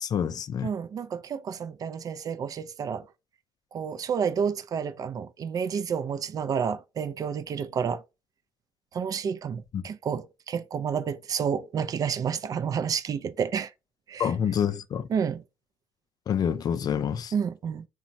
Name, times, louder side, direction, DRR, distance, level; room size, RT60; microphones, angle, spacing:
voice 1, 0.0-0.7 9.7-9.8 14.2-15.1 16.3-17.3, left 8 dB, 45° left, 0.4 m, -27 dB
voice 2, 0.6-3.1 3.7-8.0 8.9-13.7 14.1-14.3 15.1-15.4 17.3-17.9, right 7 dB, 40° right, 0.4 m, -30 dB
2.9 x 2.2 x 2.6 m
supercardioid pair, 85°, 9 cm